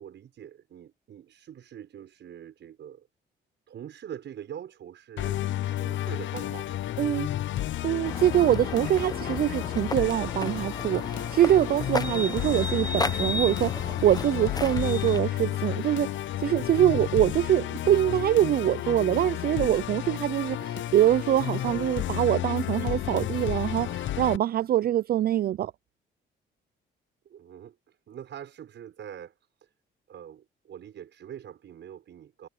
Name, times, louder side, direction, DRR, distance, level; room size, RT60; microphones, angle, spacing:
voice 1, 0.0-3.1 3.7-6.8 27.2-29.7 30.1-32.5, right 9 dB, 65° right, 6.3 m, -44 dB
Musical instrument, 5.2-24.4, left 13 dB, 75° left, 0.8 m, -32 dB
voice 2, 7.0-7.3 7.8-25.7, right 12 dB, 50° right, 0.4 m, -24 dB
sound 1, 8.0-15.2, left 3 dB, 20° left, 0.9 m, -34 dB
cardioid pair, 90°, 20 cm